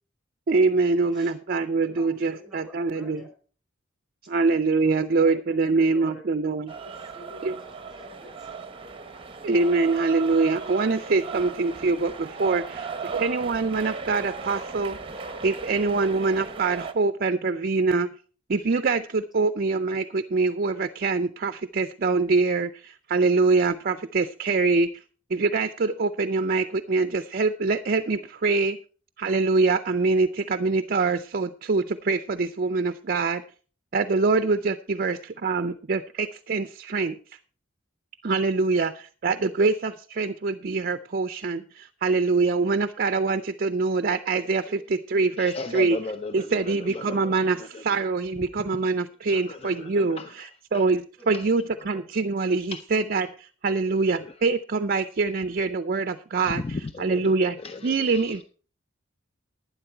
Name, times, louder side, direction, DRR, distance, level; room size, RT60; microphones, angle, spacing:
voice 1, 0.5-3.2 4.3-6.7 7.4-7.5 9.4-12.9 13.1-15.0 15.4-18.1 18.5-24.9 25.3-28.8 29.2-33.4 33.9-37.2 38.2-44.6 45.1-46.0 46.3-56.6 57.0-57.6 57.8-58.4, right 3 dB, 50° right, 0.5 m, -24 dB
voice 2, 1.8-3.3 4.7-6.3 6.8-8.7 12.9-13.0 44.6-44.9 51.2-51.4, equal, ahead, 4.6 m, -48 dB
sound 1, 6.7-16.9, right 5 dB, 25° right, 0.9 m, -37 dB
voice 3, 45.4-48.1 49.3-50.9 51.3-51.5 51.8-52.0 52.7-52.8 53.7-54.4 56.5-58.4, left 3 dB, 30° left, 0.5 m, -38 dB
11.5 x 9.5 x 4.4 m
head